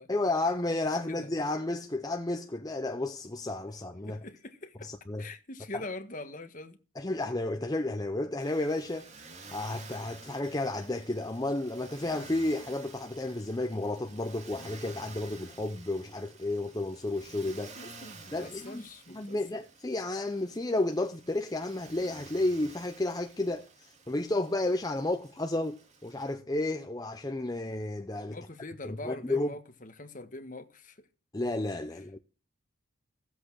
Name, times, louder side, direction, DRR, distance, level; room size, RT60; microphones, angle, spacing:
voice 1, 0.1-4.2 4.8-5.3 7.0-9.1 9.5-17.8 18.3-18.8 19.1-28.4 28.8-29.5 31.3-32.2, left 2 dB, 20° left, 0.6 m, -32 dB
voice 2, 4.1-4.9 5.2-6.8 17.8-19.6 28.3-31.1, left 2 dB, 40° left, 1.6 m, -43 dB
Motor vehicle (road), 8.4-26.3, right 4 dB, 30° right, 2.5 m, -52 dB
16.0 x 8.0 x 6.3 m
head